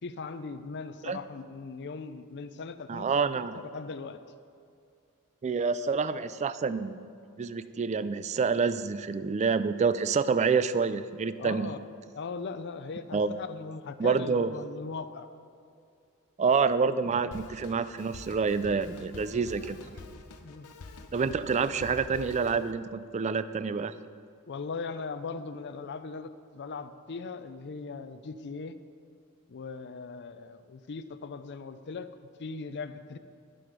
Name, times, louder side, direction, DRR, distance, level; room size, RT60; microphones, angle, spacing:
voice 1, 0.0-4.2 11.4-11.9 12.1-15.3 19.8-19.9 20.4-20.7 24.5-28.8 29.5-32.1 32.4-33.2, left 4 dB, 50° left, 11 dB, 0.5 m, -39 dB
voice 2, 2.9-3.6 5.4-7.0 7.4-11.7 13.1-13.4 14.0-14.5 16.4-19.8 21.1-23.9, right 5 dB, 30° right, 14 dB, 0.3 m, -27 dB
Drum kit, 17.3-22.7, left 3 dB, 85° left, 0.8 m, -46 dB
11.5 x 7.7 x 5.2 m, 2.4 s
head